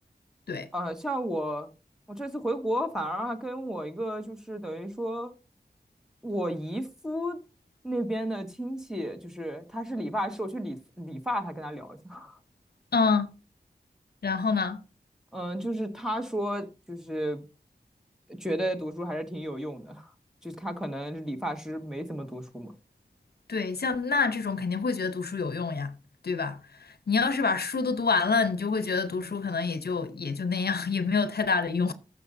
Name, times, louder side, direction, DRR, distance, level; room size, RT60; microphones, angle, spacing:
voice 1, 0.7-1.7 2.1-5.3 6.2-7.4 7.8-12.4 15.3-17.4 18.3-20.1 20.4-22.7, equal, 5° right, 1.5 m, -33 dB
voice 2, 12.9-13.3 14.2-14.8 23.5-25.9 26.2-26.6 27.1-31.9, left 4 dB, 80° left, 0.8 m, -27 dB
15.0 x 6.6 x 2.7 m
wide cardioid pair, 60°, 16 cm